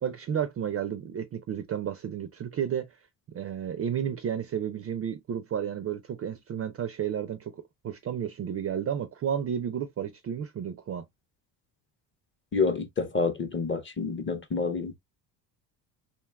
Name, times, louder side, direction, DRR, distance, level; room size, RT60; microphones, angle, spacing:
voice 1, 0.0-2.9 3.3-7.5 7.8-11.0, right 9 dB, 35° right, 0.4 m, -32 dB
voice 2, 12.5-15.0, left 4 dB, 25° left, 0.6 m, -28 dB
2.8 x 2.3 x 2.2 m
supercardioid pair, 70°, 47 cm